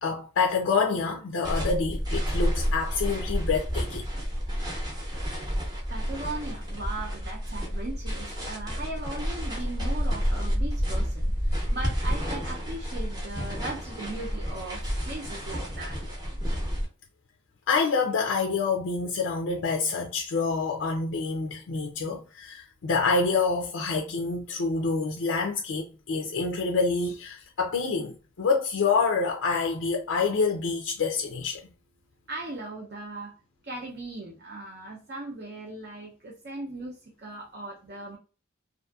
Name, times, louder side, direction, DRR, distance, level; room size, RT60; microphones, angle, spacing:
voice 1, 0.0-4.0 17.7-31.6, left 4 dB, 80° left, 0.4 m, -27 dB
sound 1, 1.4-16.9, equal, 20° right, 0.7 m, -30 dB
voice 2, 5.9-16.0 32.3-33.3 33.6-38.2, right 2 dB, 50° right, 0.6 m, -38 dB
2.6 x 2.5 x 2.3 m
head